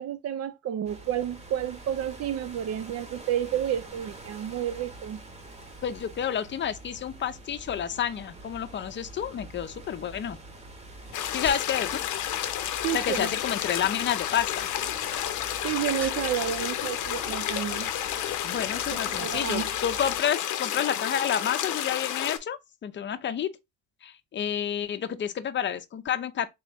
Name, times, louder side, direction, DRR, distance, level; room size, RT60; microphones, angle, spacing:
voice 1, 0.0-5.2 12.8-13.3 15.6-17.9 18.9-19.7, right 10 dB, 55° right, 0.4 m, -30 dB
sound 1, 0.9-20.2, right 2 dB, 20° right, 0.9 m, -46 dB
voice 2, 5.8-10.4 11.3-12.0 12.9-14.7 18.4-23.5 24.0-26.5, left 9 dB, 40° left, 0.5 m, -30 dB
sound 2, 9.8-12.1 12.4-12.9 14.1-16.6 16.9-17.5 17.8-18.1, left 1 dB, 5° left, 0.7 m, -48 dB
sound 3, 11.1-22.4, left 11 dB, 80° left, 0.6 m, -31 dB
3.7 x 2.9 x 3.4 m
cardioid pair, 90°, 30 cm